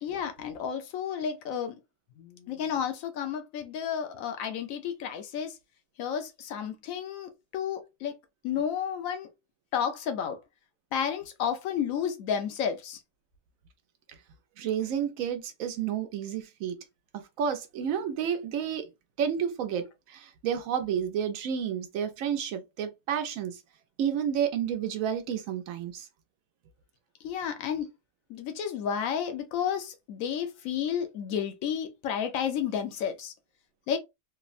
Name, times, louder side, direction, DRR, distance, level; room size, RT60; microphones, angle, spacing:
voice 1, 0.0-1.8 2.2-5.6 6.0-8.1 8.4-9.3 9.7-10.4 10.9-13.0 27.2-27.9 28.3-33.3 33.9-34.0, left 8 dB, 90° left, 1.0 m, -31 dB
voice 2, 14.6-16.8 17.1-18.9 19.2-23.6 24.0-26.1, right 8 dB, 85° right, 1.0 m, -31 dB
3.3 x 2.0 x 2.4 m
omnidirectional pair, 1.4 m